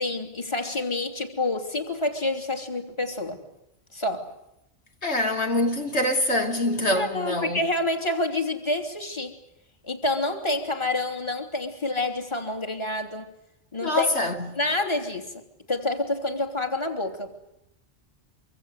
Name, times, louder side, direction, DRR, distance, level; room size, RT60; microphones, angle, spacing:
voice 1, 0.0-3.4 3.9-4.3 6.9-9.4 9.8-13.3 13.7-14.2 14.5-15.4 15.7-17.3, left 2 dB, 25° left, 3.1 m, -28 dB
voice 2, 5.0-7.6 13.8-14.6, left 1 dB, 70° left, 3.2 m, -25 dB
25.0 x 25.0 x 8.2 m
omnidirectional pair, 1.2 m